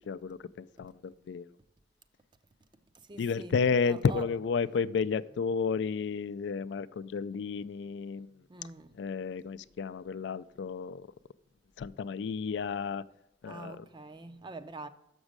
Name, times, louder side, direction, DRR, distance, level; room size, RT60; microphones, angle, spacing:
voice 1, 0.1-1.5 3.2-8.3 9.0-11.1 11.8-13.0 13.4-13.8, left 5 dB, 70° left, 0.3 m, -32 dB
voice 2, 2.9-4.3 8.5-9.0 13.4-14.9, right 2 dB, 25° right, 0.5 m, -45 dB
7.1 x 6.2 x 6.5 m
head